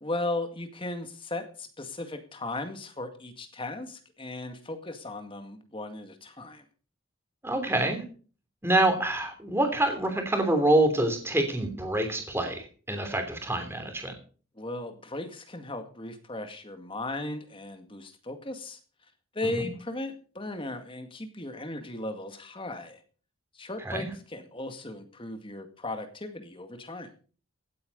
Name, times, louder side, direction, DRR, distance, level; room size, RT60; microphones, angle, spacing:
voice 1, 0.0-6.6 14.6-18.8 19.3-23.0 23.5-27.1, left 2 dB, 25° left, 7 dB, 2.0 m, -36 dB
voice 2, 7.4-8.0 8.6-14.1 23.9-24.1, right 1 dB, 10° right, 5 dB, 3.1 m, -26 dB
16.5 x 8.8 x 5.4 m, 0.40 s
head